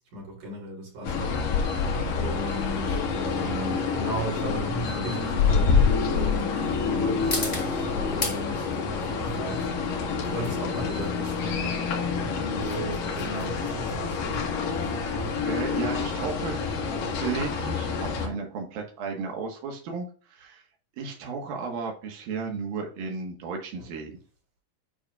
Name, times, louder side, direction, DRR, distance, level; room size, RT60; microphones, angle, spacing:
voice 1, 0.1-1.8 2.1-9.7 10.2-11.8 12.2-14.5 23.8-23.9, right 1 dB, 60° right, 4.6 m, -36 dB
sound 1, 1.0-18.3, left 5 dB, 75° left, 3.1 m, -27 dB
sound 2, 1.7-18.3, left 2 dB, 15° left, 1.5 m, -40 dB
voice 2, 15.4-16.8 17.2-20.6 21.0-24.2, right 5 dB, 85° right, 3.2 m, -34 dB
9.6 x 6.1 x 2.4 m
omnidirectional pair, 4.1 m